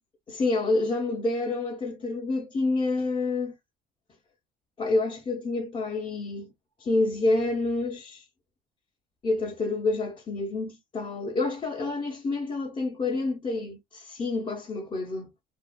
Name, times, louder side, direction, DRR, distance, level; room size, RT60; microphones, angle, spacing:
voice 1, 0.3-3.5 4.8-6.5 6.8-8.2 9.2-15.3, left 3 dB, 30° left, 0.9 m, -28 dB
2.6 x 2.3 x 2.2 m
cardioid pair, 110°, 17 cm